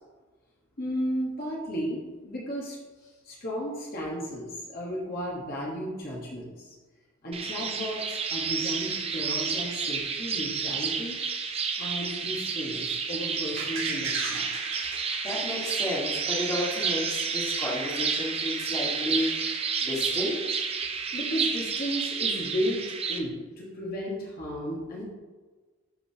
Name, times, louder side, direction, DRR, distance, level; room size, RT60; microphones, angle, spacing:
voice 1, 0.8-2.8 3.2-6.7 7.2-11.2 11.8-14.4 21.1-25.0, equal, 45° left, -4 dB, 1.4 m, -34 dB
sound 1, 7.3-23.2, right 5 dB, 30° right, 0.6 m, -30 dB
sound 2, 13.6-16.5 16.9-17.0, right 4 dB, 75° right, 1.7 m, -37 dB
voice 2, 15.2-20.5, left 1 dB, 20° left, -5 dB, 1.7 m, -32 dB
12.0 x 5.2 x 2.9 m, 1.3 s
head